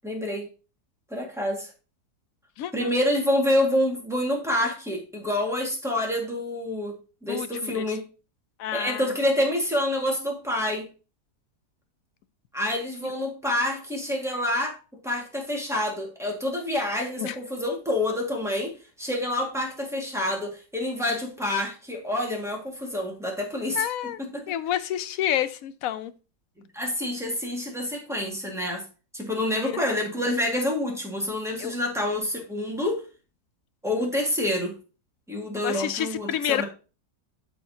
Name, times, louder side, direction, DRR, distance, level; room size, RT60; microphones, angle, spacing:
voice 1, 0.0-0.5 1.1-1.7 2.7-7.0 7.2-8.0 8.7-10.9 12.5-14.8 15.0-23.8 24.2-24.4 26.7-28.8 29.1-33.0 33.8-34.8 35.3-36.6, left 1 dB, ahead, 1.8 m, -27 dB
voice 2, 2.6-2.9 7.3-7.9 8.6-9.1 13.0-13.1 17.2-17.4 23.8-24.2 24.5-26.1 29.6-29.7 31.6-31.7 35.6-36.6, left 11 dB, 65° left, 0.9 m, -29 dB
12.5 x 4.4 x 2.8 m
omnidirectional pair, 1.7 m